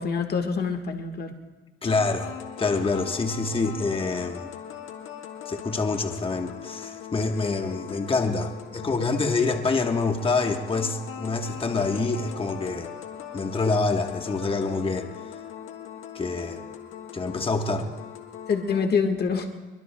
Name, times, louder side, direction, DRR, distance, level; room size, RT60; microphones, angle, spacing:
voice 1, 0.0-1.3 18.5-19.5, left 5 dB, 55° left, 4 dB, 1.5 m, -25 dB
voice 2, 1.8-4.5 5.5-12.9 13.3-15.1 16.1-16.6 17.1-17.9, left 3 dB, 25° left, 5 dB, 1.3 m, -26 dB
sound 1, 1.9-18.9, left 8 dB, 80° left, 1.4 m, -40 dB
23.5 x 23.0 x 2.2 m, 1.3 s
cardioid pair, 90°, 20 cm